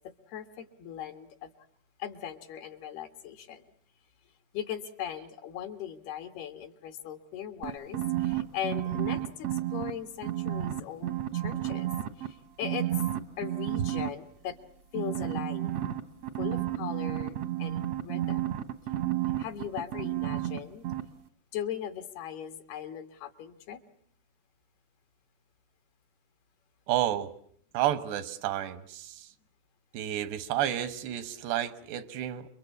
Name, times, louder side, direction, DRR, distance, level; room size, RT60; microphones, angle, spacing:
voice 1, 0.3-1.5 2.0-3.7 4.5-11.9 12.2-12.9 13.4-14.6 14.9-15.7 16.4-18.5 19.4-20.9 21.5-23.8, left 9 dB, 70° left, 8 dB, 3.4 m, -39 dB
sound 1, 7.6-9.9 10.2-12.3 12.6-14.1 14.9-20.6 20.8-21.0, right 13 dB, 70° right, 1.5 m, -31 dB
voice 2, 26.9-27.3 27.7-29.3 29.9-32.5, right 12 dB, 85° right, 13 dB, 3.4 m, -31 dB
29.0 x 23.0 x 8.4 m, 0.62 s
omnidirectional pair, 4.7 m